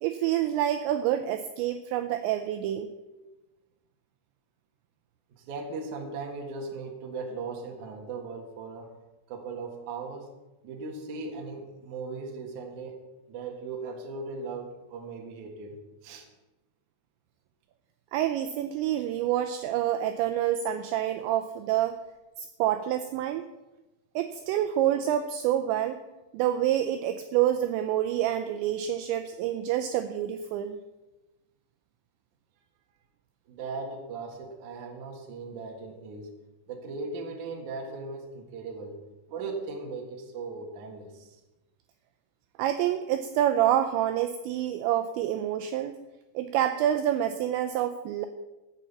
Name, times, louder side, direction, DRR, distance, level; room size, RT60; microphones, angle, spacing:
voice 1, 0.0-2.9 18.1-22.0 22.4-23.5 24.2-26.0 26.3-30.8 42.6-46.0 46.4-48.3, right 11 dB, 85° right, 8 dB, 2.6 m, -27 dB
voice 2, 5.4-9.0 9.3-10.3 10.6-13.0 13.3-15.8 16.0-16.3 33.5-36.3 36.7-39.0 39.3-41.4, right 4 dB, 65° right, 2 dB, 2.0 m, -38 dB
15.0 x 6.1 x 7.1 m, 1.1 s
omnidirectional pair, 5.7 m